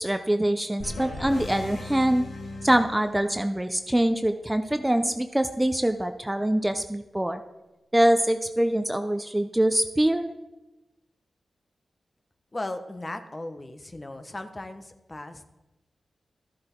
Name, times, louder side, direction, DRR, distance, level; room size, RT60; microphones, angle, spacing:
voice 1, 0.0-2.3 2.6-7.4 7.9-10.3, right 1 dB, 15° right, 8 dB, 0.7 m, -24 dB
sound 1, 0.8-3.6, left 2 dB, 80° left, 1.6 m, -38 dB
voice 2, 12.5-15.4, left 2 dB, 30° left, 8 dB, 1.1 m, -37 dB
13.0 x 7.5 x 4.5 m, 1.0 s
supercardioid pair, 40°, 0 cm